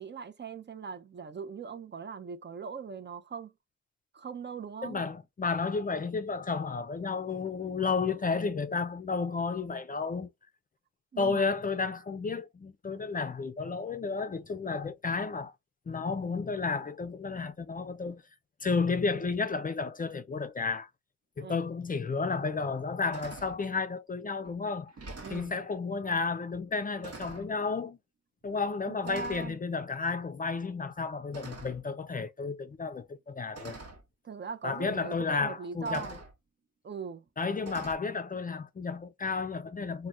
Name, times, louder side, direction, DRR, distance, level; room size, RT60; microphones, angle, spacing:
voice 1, 0.0-3.5 4.1-5.0 11.1-11.4 21.4-21.7 25.2-25.5 28.9-29.6 34.2-36.2 36.8-37.2, right 5 dB, 40° right, 0.5 m, -40 dB
voice 2, 4.8-10.3 11.2-15.5 15.9-18.2 18.6-20.9 21.4-24.9 25.3-28.0 28.4-33.8 34.6-36.2 37.4-40.1, left 4 dB, 30° left, 0.4 m, -32 dB
sound 1, 22.0-22.1 22.6-22.8 23.1-23.6 24.4-24.5 24.9-25.5 26.5-26.7 27.0-27.5 28.4-28.7 29.0-29.5 31.3-31.9 33.0-33.1 33.5-34.0 35.2-35.3 35.8-36.3 37.6-38.0, right 3 dB, 55° right, 1.0 m, -45 dB
3.3 x 2.2 x 2.5 m
cardioid pair, 75°, 29 cm